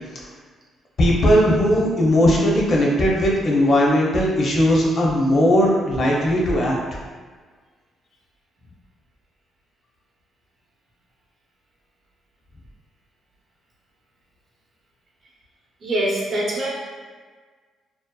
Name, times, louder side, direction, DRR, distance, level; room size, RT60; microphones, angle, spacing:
voice 1, 1.0-6.8, equal, 55° left, -3 dB, 0.6 m, -18 dB
voice 2, 15.8-16.7, right 1 dB, 50° right, -5 dB, 0.7 m, -24 dB
2.7 x 2.1 x 2.2 m, 1.5 s
cardioid pair, 90°, 0 cm